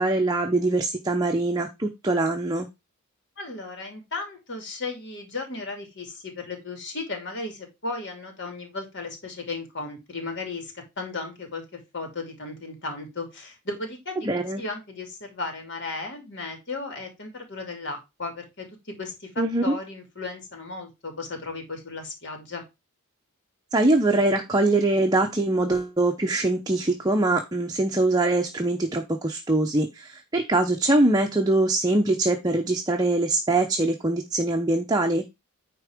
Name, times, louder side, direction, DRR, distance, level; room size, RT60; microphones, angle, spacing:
voice 1, 0.0-2.7 14.2-14.6 19.4-19.7 23.7-35.3, right 2 dB, 20° right, 3 dB, 0.8 m, -23 dB
voice 2, 3.4-22.6, left 3 dB, 55° left, 4 dB, 2.8 m, -35 dB
9.7 x 3.7 x 5.0 m, 0.23 s
head